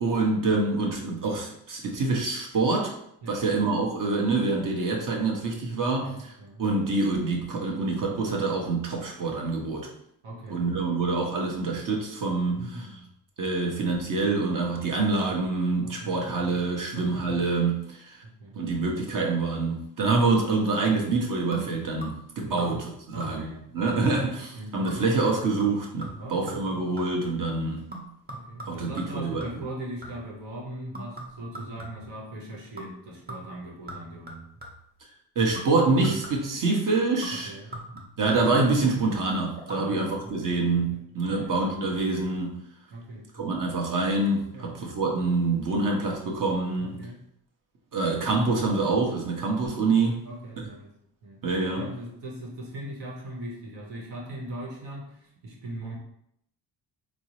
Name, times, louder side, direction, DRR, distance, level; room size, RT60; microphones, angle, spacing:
voice 1, 0.0-2.9 3.3-6.3 6.6-9.9 10.5-12.9 13.4-18.2 18.5-22.8 23.1-27.9 28.7-29.5 35.4-37.5 38.2-42.6 43.3-46.9 47.9-50.3 50.6-50.7 51.4-51.9, right 3 dB, 45° right, 0 dB, 0.9 m, -26 dB
voice 2, 3.2-3.7 6.0-6.7 10.2-11.0 12.5-13.1 15.8-16.6 16.9-17.5 18.2-18.6 22.6-22.8 23.1-25.2 26.2-26.9 28.3-34.5 37.3-37.8 39.7-41.0 41.3-41.5 42.9-43.5 44.5-44.8 46.8-47.2 50.2-50.9 51.2-51.4 51.7-56.0, right 1 dB, 80° right, -2 dB, 1.1 m, -40 dB
sound 1, 21.5-22.3 22.6-22.9 23.2-23.6 23.9-24.3 24.9-27.3 27.9-30.4 30.9-32.2 32.8-33.0 33.3-34.9 35.6-36.6 37.2-39.0 39.6-39.8 40.1-40.2, right 1 dB, 20° right, 0.9 m, -42 dB
3.5 x 2.0 x 2.9 m, 0.74 s
supercardioid pair, 70°, 43 cm